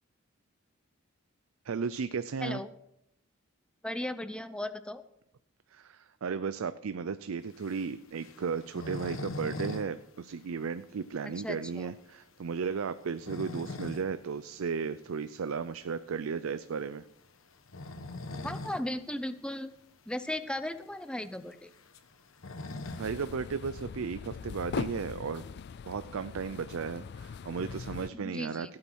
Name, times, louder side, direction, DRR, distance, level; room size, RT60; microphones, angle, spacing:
voice 1, 1.7-2.6 5.7-17.0 23.0-25.5 25.9-28.8, right 5 dB, 75° right, 12 dB, 0.5 m, -35 dB
voice 2, 3.8-5.0 11.2-11.9 18.4-19.7 20.1-21.7 28.1-28.7, left 1 dB, 5° left, 11 dB, 0.6 m, -36 dB
sound 1, 7.5-9.9 10.2-10.3 10.7-10.8 11.3-11.4 12.9-14.1 14.5-14.6 16.2-16.4 17.6-18.9 19.2-19.3 19.6-19.7 20.4-20.5 20.7-23.3, left 2 dB, 75° left, 1.2 m, -41 dB
sound 2, 22.8-28.1, left 5 dB, 55° left, 0.3 m, -41 dB
15.5 x 8.7 x 4.6 m, 0.80 s
head